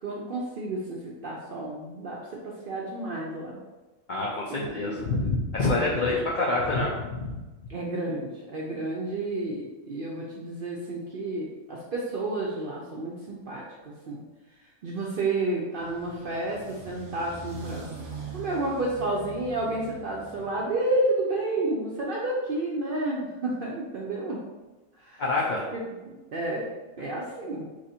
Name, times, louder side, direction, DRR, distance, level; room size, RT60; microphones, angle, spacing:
voice 1, 0.0-3.6 4.5-5.2 5.9-6.0 7.7-14.2 14.8-17.9 18.3-24.4 25.1-25.2 25.7-25.8 26.3-26.7 27.0-27.7, right 2 dB, 65° right, -3 dB, 0.5 m, -31 dB
voice 2, 4.1-7.4 25.2-25.6, left 2 dB, 70° left, -3 dB, 0.4 m, -27 dB
sound 1, 15.8-20.7, right 4 dB, 45° right, 1.0 m, -42 dB
3.0 x 2.5 x 4.1 m, 1.2 s
omnidirectional pair, 1.4 m